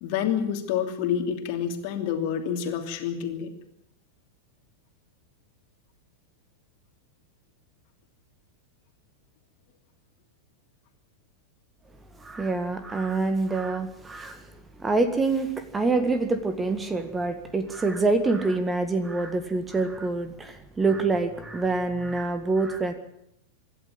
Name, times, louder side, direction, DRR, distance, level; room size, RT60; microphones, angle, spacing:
voice 1, 0.0-3.5, left 8 dB, 45° left, 5 dB, 2.9 m, -28 dB
voice 2, 12.2-14.5 14.8-22.9, right 3 dB, 15° right, 9 dB, 1.9 m, -26 dB
26.0 x 12.0 x 8.8 m, 0.80 s
figure-of-eight pair, 90°, 0 cm